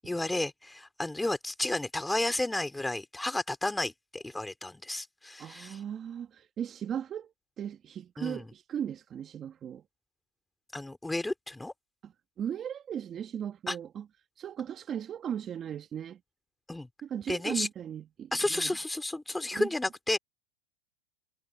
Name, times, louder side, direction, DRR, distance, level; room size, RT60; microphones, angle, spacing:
voice 1, 0.0-5.8 8.2-8.5 10.7-11.7 13.7-13.8 16.7-16.9 17.3-17.7 18.3-20.2, left 2 dB, 5° left, 3.5 m, -32 dB
voice 2, 5.4-9.8 12.0-12.1 12.4-14.1 14.4-16.2 17.0-18.8 19.5-19.7, right 9 dB, 30° right, 2.4 m, -37 dB
hypercardioid pair, 115°, 0 cm